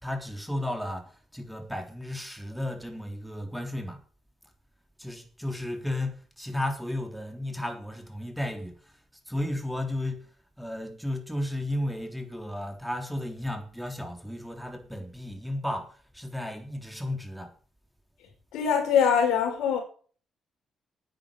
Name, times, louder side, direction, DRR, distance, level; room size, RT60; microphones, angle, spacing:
voice 1, 0.0-4.0 5.0-8.9 9.3-10.3 10.6-17.5, left 1 dB, ahead, 3.4 m, -34 dB
voice 2, 18.5-19.8, left 7 dB, 85° left, 4.9 m, -23 dB
10.0 x 9.4 x 8.8 m
cardioid pair, 90°, 0 cm